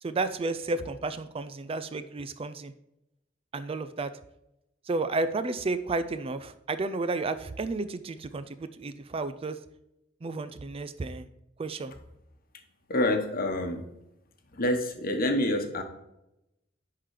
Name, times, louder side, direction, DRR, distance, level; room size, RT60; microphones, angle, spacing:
voice 1, 0.0-2.7 3.5-4.1 4.8-9.6 10.2-11.3 11.6-11.9, right 3 dB, 30° right, 12 dB, 0.4 m, -32 dB
voice 2, 12.9-13.8 14.5-15.8, left 1 dB, 50° left, 6 dB, 1.1 m, -27 dB
10.0 x 3.8 x 4.8 m, 0.86 s
head